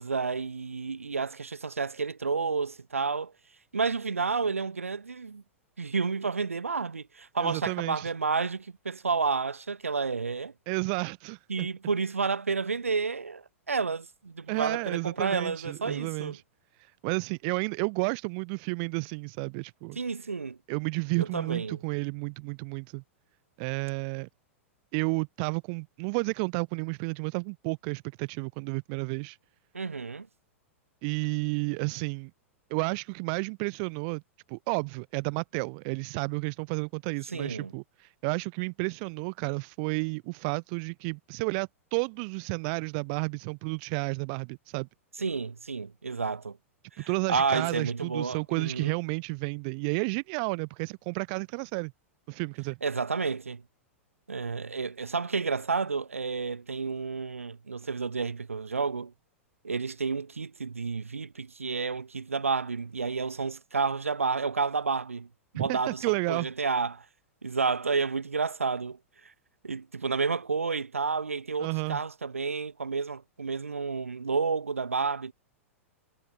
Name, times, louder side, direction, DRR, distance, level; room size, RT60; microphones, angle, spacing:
voice 1, 0.0-3.3 3.7-5.4 5.8-10.5 11.5-16.4 20.0-20.6 21.2-21.8 29.7-30.3 37.3-37.7 45.2-46.6 47.0-48.9 52.8-53.6 54.3-59.1 59.6-65.3 65.5-67.0 67.4-69.0 69.6-75.3, right 4 dB, 75° right, 7.6 m, -30 dB
voice 2, 7.4-8.1 10.7-11.7 14.5-16.4 16.8-20.0 20.7-23.0 23.6-24.3 24.9-29.4 31.0-32.3 32.7-34.2 34.5-44.9 47.0-51.9 52.3-52.8 65.5-66.5 71.6-72.0, right 36 dB, 45° right, 2.9 m, -31 dB
figure-of-eight pair, 95°, 7 cm